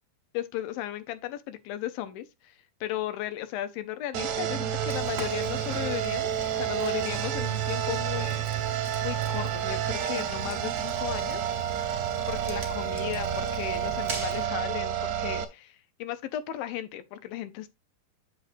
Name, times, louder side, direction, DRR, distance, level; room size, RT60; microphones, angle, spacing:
voice 1, 0.3-2.6 2.8-8.4 9.0-11.5 12.3-17.7, left 12 dB, 75° left, 2.4 m, -35 dB
sound 1, 4.1-15.4, right 9 dB, 75° right, 1.7 m, -30 dB
Fire, 4.9-14.5, right 3 dB, 30° right, 1.1 m, -42 dB
8.0 x 7.3 x 2.6 m
omnidirectional pair, 4.4 m